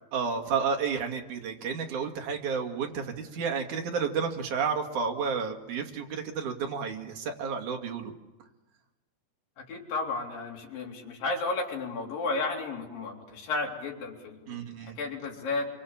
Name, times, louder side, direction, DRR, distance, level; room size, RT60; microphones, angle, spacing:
voice 1, 0.1-8.1 14.5-15.0, right 6 dB, 55° right, 4 dB, 3.5 m, -31 dB
voice 2, 9.7-15.7, left 3 dB, 60° left, 0 dB, 5.0 m, -33 dB
26.5 x 25.0 x 7.3 m, 1.1 s
omnidirectional pair, 4.5 m